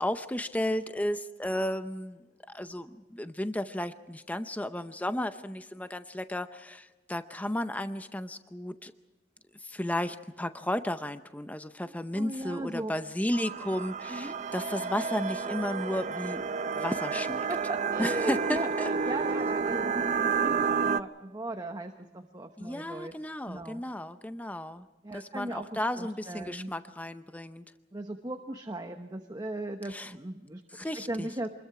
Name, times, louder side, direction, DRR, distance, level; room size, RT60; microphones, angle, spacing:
voice 1, 0.0-2.2 2.5-8.9 9.6-16.4 16.8-17.5 18.0-18.9 22.6-24.9 25.1-27.6 29.9-30.1 30.7-31.3, left 1 dB, 10° left, 10 dB, 0.6 m, -33 dB
voice 2, 11.9-12.9 14.1-14.4 16.7-16.8 17.1-23.1 23.4-23.8 25.0-25.7 26.0-26.7 27.9-31.5, right 1 dB, 25° right, 6 dB, 1.1 m, -38 dB
sound 1, 13.3-21.0, right 5 dB, 45° right, 0.6 m, -30 dB
27.0 x 21.0 x 4.9 m, 1.2 s
head